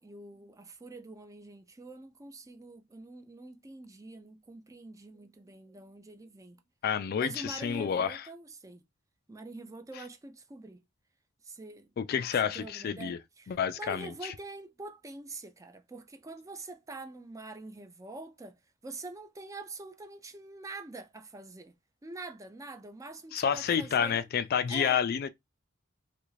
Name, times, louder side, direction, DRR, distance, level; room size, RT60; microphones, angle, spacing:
voice 1, 0.0-6.6 7.2-8.8 9.3-10.8 11.4-11.9 12.4-21.7 22.0-24.3 24.7-25.0, right 2 dB, 15° right, 0.4 m, -45 dB
voice 2, 6.8-8.2 12.0-13.2 13.5-14.3 23.3-25.3, left 7 dB, 50° left, 0.3 m, -29 dB
3.2 x 2.5 x 3.1 m
head